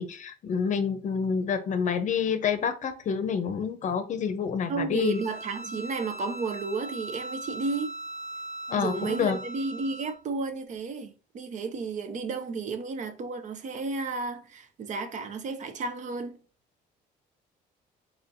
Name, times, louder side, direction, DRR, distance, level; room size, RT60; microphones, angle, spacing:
voice 1, 0.0-5.2 8.7-9.4, left 6 dB, 45° left, 0.7 m, -28 dB
voice 2, 4.7-8.0 8.8-16.4, right 4 dB, 45° right, 0.7 m, -32 dB
Bowed string instrument, 5.0-10.2, right 1 dB, 75° right, 1.6 m, -40 dB
4.2 x 4.1 x 2.6 m
cardioid pair, 110°, 17 cm